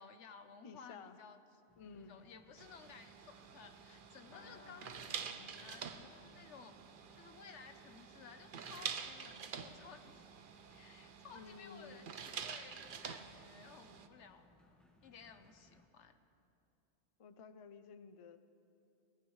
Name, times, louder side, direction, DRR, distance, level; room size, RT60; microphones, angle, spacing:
voice 1, 0.0-1.4 2.0-6.8 7.1-14.6 14.8-16.2, left 6 dB, 70° left, 8 dB, 1.1 m, -57 dB
voice 2, 0.6-1.2 1.8-2.2 11.3-12.1 17.2-18.4, left 5 dB, 45° left, 11 dB, 0.4 m, -54 dB
sound 1, 1.7-15.9, left 1 dB, ahead, 1.4 m, -69 dB
sound 2, 2.6-14.1, right 6 dB, 50° right, 0.8 m, -48 dB
sound 3, 4.3-9.9 10.1-10.2 10.5-10.6, left 3 dB, 90° left, 1.8 m, -64 dB
24.5 x 18.0 x 3.2 m, 2.7 s
omnidirectional pair, 1.3 m